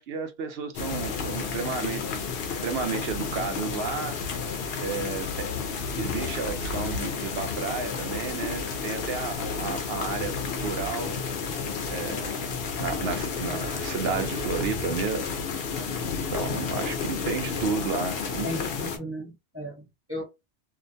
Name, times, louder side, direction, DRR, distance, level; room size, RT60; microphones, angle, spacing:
voice 1, 0.0-2.3 2.6-4.2 4.8-5.5 6.0-11.1 11.9-12.5 12.8-15.6 16.3-18.6, right 5 dB, 60° right, 0.8 m, -32 dB
sound 1, 0.7-19.0, left 5 dB, 60° left, 0.7 m, -31 dB
voice 2, 18.4-20.2, equal, 15° right, 0.7 m, -35 dB
2.5 x 2.1 x 2.6 m
omnidirectional pair, 1.3 m